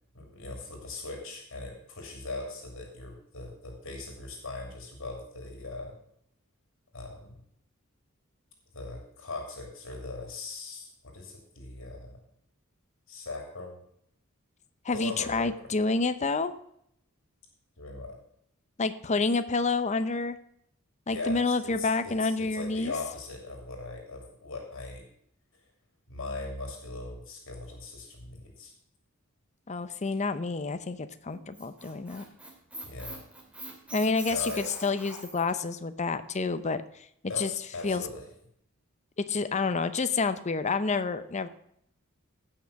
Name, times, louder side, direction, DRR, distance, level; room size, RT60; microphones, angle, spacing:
voice 1, 0.1-5.9 6.9-7.4 8.7-12.2 13.1-13.8 14.9-15.5 17.8-18.1 21.1-25.0 26.1-28.7 32.8-33.2 34.3-34.6 37.3-37.5 37.7-38.2, left 3 dB, 65° left, 2 dB, 2.8 m, -39 dB
voice 2, 14.8-16.5 18.8-20.4 21.1-22.9 29.7-32.2 33.9-36.8 37.4-37.5 37.8-38.0 39.3-41.5, left 4 dB, 35° left, 11 dB, 0.6 m, -28 dB
Squeak, 31.3-35.5, right 1 dB, 5° right, 2.6 m, -43 dB
16.5 x 6.0 x 5.2 m, 0.71 s
head